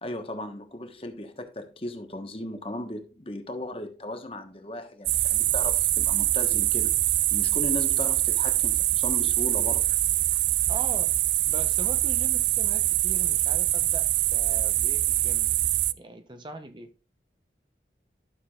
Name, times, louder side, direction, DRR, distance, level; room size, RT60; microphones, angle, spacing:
voice 1, 0.0-9.9, left 1 dB, 30° left, 1.3 m, -37 dB
sound 1, 5.1-15.9, right 15 dB, 85° right, 0.5 m, -24 dB
voice 2, 10.7-11.2 11.5-15.5 15.9-16.9, right 1 dB, 25° right, 0.8 m, -41 dB
12.5 x 6.8 x 2.4 m
head